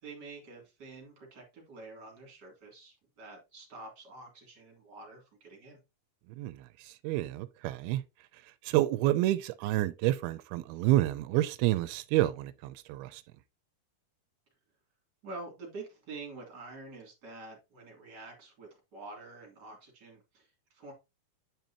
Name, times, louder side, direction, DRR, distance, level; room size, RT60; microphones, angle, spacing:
voice 1, 0.0-5.8 15.2-20.9, right 3 dB, 30° right, 3.4 m, -47 dB
voice 2, 6.4-8.0 8.6-13.2, right 15 dB, 90° right, 2.6 m, -29 dB
9.4 x 5.3 x 2.9 m
omnidirectional pair, 4.4 m